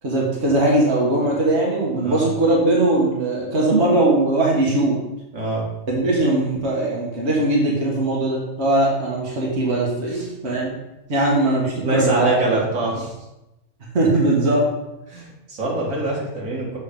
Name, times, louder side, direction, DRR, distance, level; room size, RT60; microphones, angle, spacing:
voice 1, 0.0-5.0 5.9-10.7 11.1-12.6 13.9-14.7, right 2 dB, 55° right, -4 dB, 1.7 m, -20 dB
voice 2, 5.3-5.7 10.1-10.2 11.8-13.1 15.1-16.8, right 2 dB, 75° right, -3 dB, 2.1 m, -24 dB
6.9 x 4.0 x 5.2 m, 0.95 s
omnidirectional pair, 1.4 m